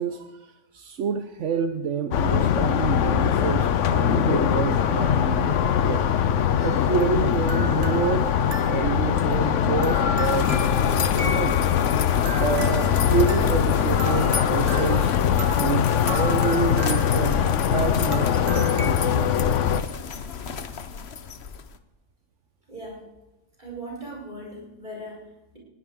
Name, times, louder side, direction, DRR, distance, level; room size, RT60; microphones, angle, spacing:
voice 1, 0.0-6.1 6.6-8.2 8.7-10.6 10.9-11.6 12.4-15.1 15.6-17.4 17.7-19.6, right 7 dB, 80° right, 7 dB, 1.2 m, -28 dB
sound 1, 2.1-19.8, left 8 dB, 90° left, 1.1 m, -22 dB
sound 2, 6.6-18.9, right 2 dB, 60° right, 1.7 m, -38 dB
sound 3, 10.2-21.8, left 6 dB, 60° left, 1.2 m, -33 dB
voice 2, 22.7-23.0 23.6-25.6, right 1 dB, 40° right, -4 dB, 6.5 m, -39 dB
20.5 x 16.0 x 3.7 m, 1.1 s
omnidirectional pair, 1.2 m